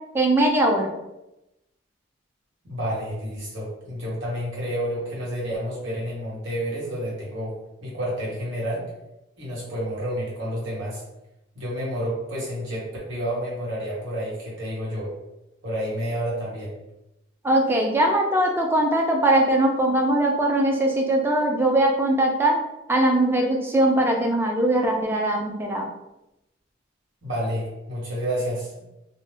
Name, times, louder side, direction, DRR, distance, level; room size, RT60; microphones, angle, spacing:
voice 1, 0.1-0.9 17.4-22.6 22.9-25.9, right 1 dB, 10° right, 1 dB, 0.3 m, -21 dB
voice 2, 2.6-8.8 9.4-11.0 11.5-15.1 15.6-16.7 27.2-28.7, equal, 85° right, -5 dB, 1.3 m, -30 dB
2.7 x 2.1 x 3.2 m, 0.92 s
head